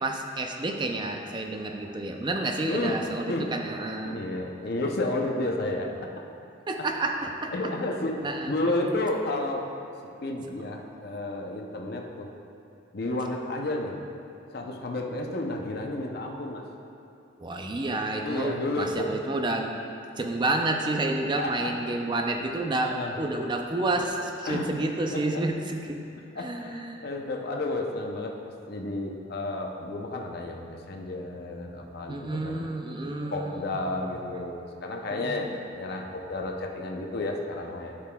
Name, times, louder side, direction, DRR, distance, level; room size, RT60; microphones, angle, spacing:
voice 1, 0.0-4.3 6.7-7.5 8.2-8.5 17.4-19.8 20.2-26.0 26.4-27.0 32.1-33.8 35.1-35.4, right 2 dB, 25° right, 3 dB, 0.4 m, -30 dB
voice 2, 2.7-3.0 3.3-3.5 4.0-5.9 7.5-9.7 10.2-12.3 12.9-14.0 14.5-16.6 18.2-19.1 21.4-21.9 22.8-23.1 24.4-24.7 25.1-25.4 26.3-28.4 28.7-32.7 33.3-37.9, left 2 dB, 55° left, 1 dB, 0.6 m, -31 dB
10.0 x 6.7 x 2.3 m, 2.6 s
head